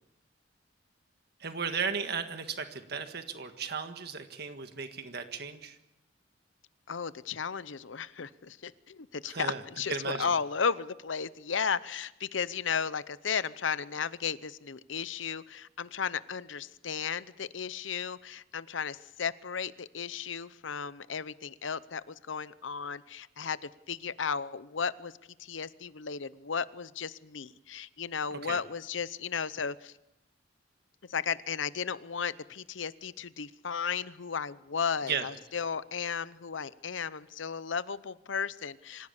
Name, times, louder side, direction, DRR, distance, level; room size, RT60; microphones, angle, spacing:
voice 1, 1.4-5.8 9.3-9.6 9.9-10.3 28.4-28.6 35.1-35.2, right 6 dB, 55° right, 7 dB, 1.7 m, -35 dB
voice 2, 6.9-25.1 25.4-29.9 31.1-39.1, left 6 dB, 80° left, 16 dB, 0.8 m, -34 dB
26.0 x 16.0 x 7.2 m, 0.89 s
head